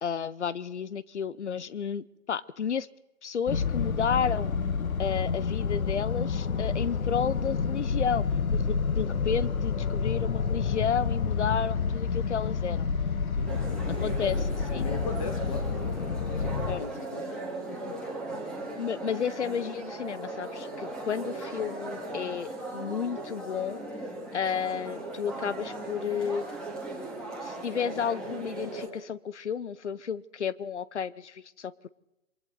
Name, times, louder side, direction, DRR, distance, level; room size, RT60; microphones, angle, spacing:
voice 1, 0.0-2.9 3.2-4.5 5.0-8.2 8.5-12.9 14.0-14.8 16.7-16.8 18.8-23.8 24.3-26.4 27.4-31.9, left 7 dB, 55° left, 20 dB, 0.9 m, -32 dB
sound 1, 3.5-16.8, left 5 dB, 80° left, 1.4 m, -29 dB
voice 2, 13.3-14.1 14.7-15.9 16.4-17.4 17.7-18.0, left 4 dB, 25° left, 7 dB, 2.0 m, -39 dB
sound 2, 13.5-28.9, right 2 dB, ahead, 2.0 m, -38 dB
27.0 x 24.0 x 4.0 m, 0.92 s
hypercardioid pair, 160°, 41 cm